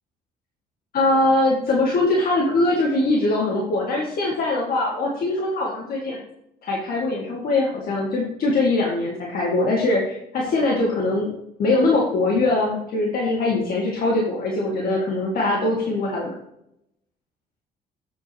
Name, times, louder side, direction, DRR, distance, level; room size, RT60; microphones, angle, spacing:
voice 1, 0.9-6.2 6.6-11.3 11.6-16.3, left 2 dB, 60° left, -3 dB, 2.0 m, -22 dB
8.5 x 7.9 x 3.0 m, 0.79 s
cardioid pair, 125°, 17 cm